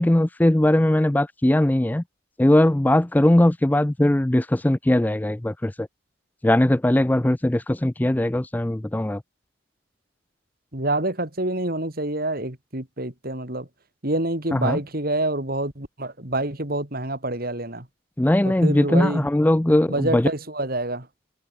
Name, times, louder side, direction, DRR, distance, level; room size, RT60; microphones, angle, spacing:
voice 1, 0.0-2.0 2.4-5.9 6.4-9.2 14.5-14.8 18.2-20.3, left 1 dB, 10° left, 0.3 m, -20 dB
voice 2, 10.7-13.7 14.0-17.8 18.4-19.2 19.9-21.1, right 1 dB, 45° right, 3.3 m, -27 dB
head